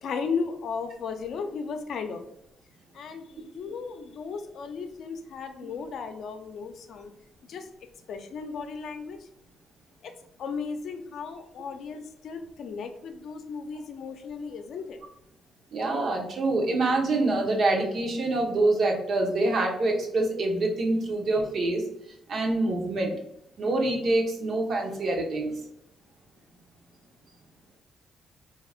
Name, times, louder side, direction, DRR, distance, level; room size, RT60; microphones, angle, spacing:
voice 1, 0.0-2.2 2.9-7.1 7.5-7.7 8.1-9.2 10.0-10.1 10.4-15.0, left 5 dB, 65° left, 6 dB, 0.5 m, -35 dB
voice 2, 15.7-21.8 22.3-23.1 23.6-25.5, right 2 dB, 55° right, 1 dB, 1.0 m, -25 dB
4.9 x 2.9 x 2.4 m, 0.79 s
cardioid pair, 90°, 0 cm